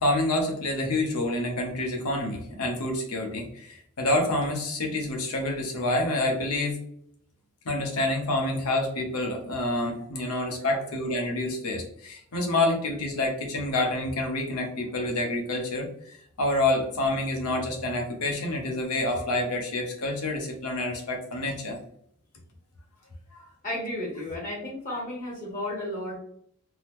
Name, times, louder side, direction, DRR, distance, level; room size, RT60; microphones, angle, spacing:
voice 1, 0.0-6.8 7.6-21.8, left 2 dB, 85° left, 2 dB, 0.8 m, -28 dB
voice 2, 23.6-26.2, left 1 dB, 35° left, -3 dB, 1.0 m, -33 dB
3.7 x 2.1 x 3.0 m, 0.67 s
head